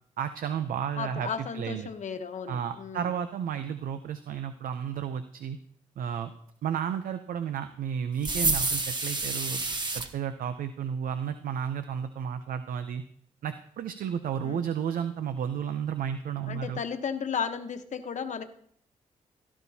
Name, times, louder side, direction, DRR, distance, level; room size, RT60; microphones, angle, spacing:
voice 1, 0.2-1.9 2.5-5.6 6.0-6.3 6.6-9.6 9.9-13.0 13.4-16.8, right 8 dB, 80° right, 10 dB, 0.6 m, -32 dB
voice 2, 1.0-3.1 14.4-14.7 16.5-18.4, left 6 dB, 60° left, 8 dB, 1.1 m, -34 dB
sound 1, 8.2-10.1, right 3 dB, 30° right, 1.3 m, -28 dB
16.5 x 12.5 x 2.8 m, 0.66 s
cardioid pair, 80°, 14 cm